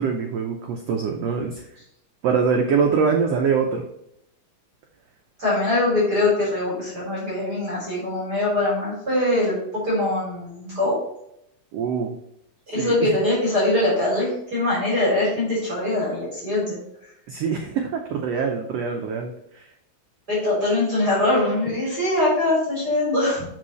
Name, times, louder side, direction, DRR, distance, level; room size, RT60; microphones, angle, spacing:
voice 1, 0.0-1.6 2.2-3.8 11.7-12.2 12.7-13.2 17.3-19.6, right 5 dB, 70° right, 2 dB, 1.6 m, -24 dB
voice 2, 5.4-9.6 9.8-11.0 12.7-16.8 20.3-23.5, left 2 dB, 30° right, -7 dB, 3.7 m, -22 dB
8.8 x 5.5 x 3.1 m, 0.75 s
omnidirectional pair, 3.8 m